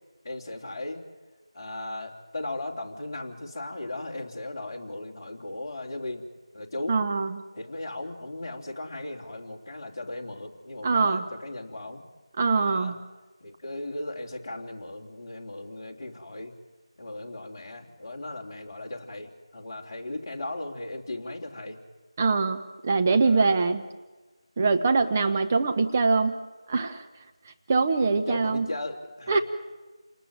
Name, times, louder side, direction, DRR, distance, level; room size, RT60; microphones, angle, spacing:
voice 1, 0.2-1.0 1.5-6.2 6.5-7.0 7.5-12.1 12.5-13.0 13.4-16.5 17.0-21.8 23.2-23.7 25.0-25.4 28.3-29.4, left 2 dB, 25° left, -2 dB, 3.4 m, -37 dB
voice 2, 6.9-7.4 10.8-11.2 12.4-13.0 22.2-23.8 24.6-26.4 26.7-27.0 27.7-28.7 29.3-29.4, right 4 dB, 20° right, 6 dB, 0.9 m, -23 dB
29.5 x 19.5 x 9.1 m, 1.2 s
figure-of-eight pair, 170°, 3 cm